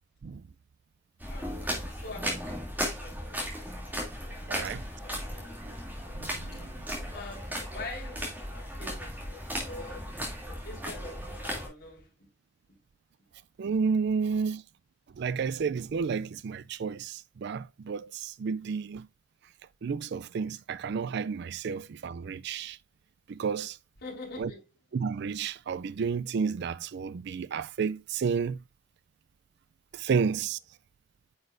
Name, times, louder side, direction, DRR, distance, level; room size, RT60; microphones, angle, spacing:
sound 1, 1.2-11.7, equal, 10° right, 2.7 m, -36 dB
voice 1, 1.3-3.4 4.3-4.6 5.2-5.6 7.1-9.2 9.6-10.1 10.6-12.1 24.0-24.6, left 2 dB, 55° left, 4.4 m, -44 dB
voice 2, 4.5-4.9 5.6-5.7 6.1-6.8 13.6-14.6 15.2-19.1 19.8-22.8 23.3-23.8 24.4-24.5 24.9-28.6 29.9-30.6, right 5 dB, 60° right, 0.4 m, -31 dB
9.5 x 6.3 x 2.6 m
head